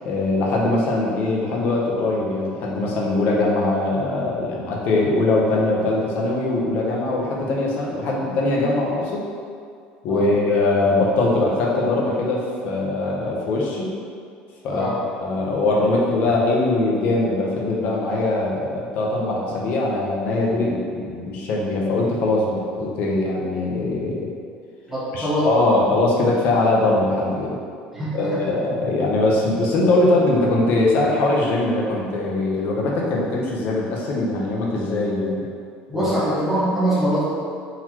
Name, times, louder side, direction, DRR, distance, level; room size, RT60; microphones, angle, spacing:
voice 1, 0.0-9.2 10.0-13.9 14.6-14.9 15.2-24.3 25.1-27.6 28.1-35.4 35.9-36.1, left 2 dB, 55° left, -3 dB, 0.7 m, -21 dB
voice 2, 24.9-25.5 27.9-28.5 35.9-37.2, right 1 dB, 5° right, -10 dB, 1.1 m, -23 dB
3.9 x 2.9 x 2.9 m, 2.3 s
cardioid pair, 140°, 4 cm